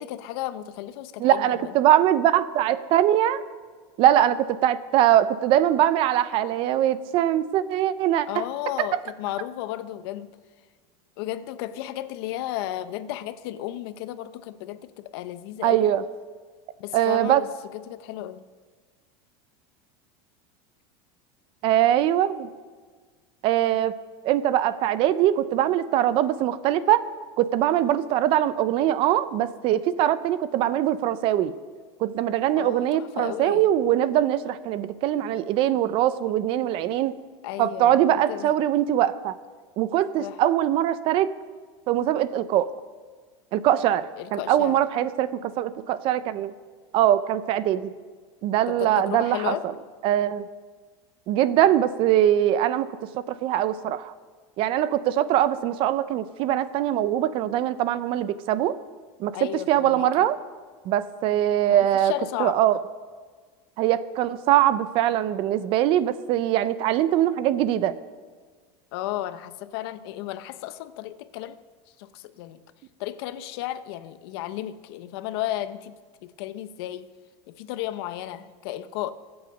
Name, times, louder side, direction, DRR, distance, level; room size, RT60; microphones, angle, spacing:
voice 1, 0.0-1.7 8.3-10.3 11.2-15.9 16.8-18.4 32.6-33.7 37.4-38.5 40.2-40.4 44.2-44.8 48.7-49.7 59.3-60.3 61.7-62.6 68.9-71.6 72.0-72.6 73.0-76.0 76.2-77.1 77.5-79.1, left 13 dB, 60° left, 13 dB, 0.8 m, -34 dB
voice 2, 1.2-3.4 4.0-8.4 8.8-9.0 15.6-16.0 16.9-17.4 21.6-22.5 23.4-23.9 24.2-27.0 27.4-31.5 32.0-37.1 37.6-39.4 39.8-41.3 41.9-42.7 43.5-46.5 46.9-47.9 48.4-49.5 50.0-50.5 51.3-52.9 53.3-54.1 54.6-58.8 59.2-59.4 59.7-60.4 60.9-62.1 62.4-62.8 63.8-67.9, right 12 dB, 40° right, 15 dB, 0.6 m, -22 dB
23.5 x 8.0 x 5.3 m, 1.5 s
supercardioid pair, 165°, 15 cm